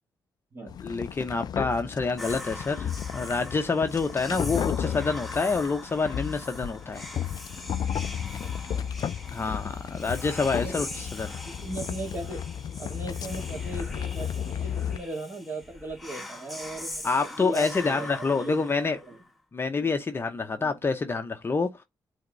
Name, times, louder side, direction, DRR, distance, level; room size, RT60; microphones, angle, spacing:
sound 1, 0.7-15.0, left 9 dB, 50° left, 0.4 m, -34 dB
voice 1, 0.8-7.1 9.3-11.3 17.0-19.0 19.5-21.8, left 4 dB, 30° left, 0.8 m, -27 dB
Whispering, 2.2-19.3, left 1 dB, ahead, 1.1 m, -42 dB
voice 2, 8.4-9.0 10.5-10.8 11.5-12.4 12.8-19.2 19.8-19.9 20.6-20.8, right 2 dB, 25° right, 2.7 m, -38 dB
8.6 x 3.6 x 4.0 m
cardioid pair, 125°, 9 cm